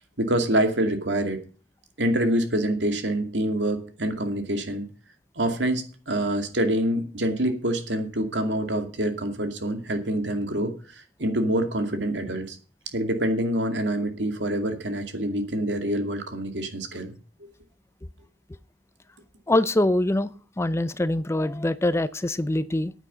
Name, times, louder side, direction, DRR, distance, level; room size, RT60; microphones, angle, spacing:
voice 1, 0.2-1.4 2.0-4.8 5.4-10.7 11.2-12.6 12.9-17.1, right 1 dB, 80° right, 2.3 m, -26 dB
voice 2, 19.5-22.9, left 1 dB, 15° left, 0.5 m, -24 dB
9.6 x 9.1 x 6.1 m
head